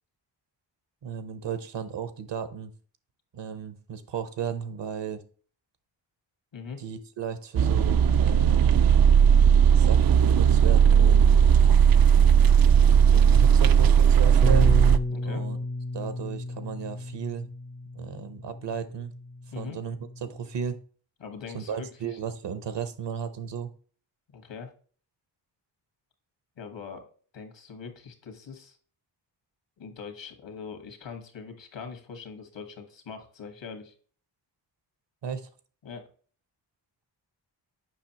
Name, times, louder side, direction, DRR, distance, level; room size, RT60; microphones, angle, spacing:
voice 1, 1.0-2.7 3.3-5.2 6.8-9.0 9.7-11.4 13.0-14.8 15.2-15.6 15.9-17.5 17.9-19.1 19.6-19.9 20.2-20.8 21.5-23.7 35.2-35.5, right 7 dB, 70° right, 12 dB, 1.0 m, -35 dB
voice 2, 6.5-6.8 15.1-15.4 19.5-19.8 21.2-22.2 24.3-24.7 26.6-27.1 27.3-28.8 29.8-33.9 35.8-36.0, left 5 dB, 75° left, 5 dB, 1.7 m, -42 dB
sound 1, 7.6-15.0, right 8 dB, 55° right, 0.5 m, -17 dB
Bass guitar, 14.4-20.7, left 2 dB, 20° left, 0.4 m, -34 dB
7.4 x 5.4 x 2.9 m, 0.43 s
cardioid pair, 80°, 44 cm